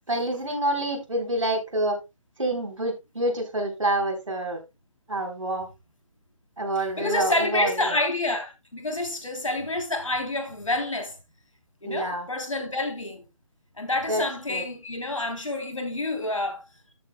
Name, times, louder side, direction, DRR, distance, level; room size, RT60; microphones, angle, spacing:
voice 1, 0.1-2.0 2.4-4.6 5.1-5.7 6.6-7.9 11.8-12.3 14.1-14.2 14.5-14.6, right 1 dB, 70° right, 3.8 m, -27 dB
voice 2, 6.8-11.1 11.8-13.3 13.8-16.6, left 2 dB, 70° left, 3.3 m, -28 dB
13.5 x 7.9 x 2.2 m
figure-of-eight pair, 150°, 17 cm